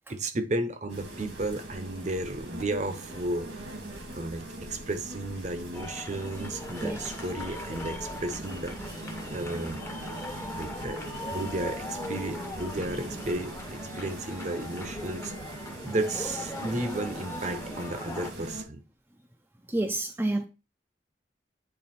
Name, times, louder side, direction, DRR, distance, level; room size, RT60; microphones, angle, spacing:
voice 1, 0.1-3.7 4.1-9.0 9.3-9.8 10.5-18.8, right 2 dB, 40° right, 0.8 m, -33 dB
sound 1, 0.9-18.6, right 1 dB, 80° right, 1.8 m, -41 dB
sound 2, 5.7-18.3, left 1 dB, 15° left, 0.8 m, -40 dB
voice 2, 19.7-20.4, right 1 dB, 10° right, 0.5 m, -28 dB
8.9 x 3.4 x 4.3 m
head